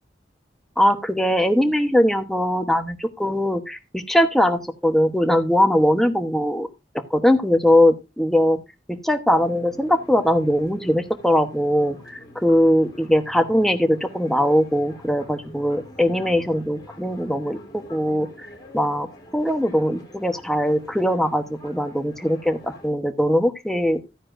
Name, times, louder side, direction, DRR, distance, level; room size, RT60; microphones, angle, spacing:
voice 1, 0.8-6.7 7.1-8.6 8.9-18.5 18.7-19.1 19.3-24.0, equal, ahead, 6 dB, 1.0 m, -21 dB
sound 1, 9.3-22.9, left 1 dB, 25° left, 3.5 m, -46 dB
13.5 x 9.6 x 2.6 m, 0.25 s
head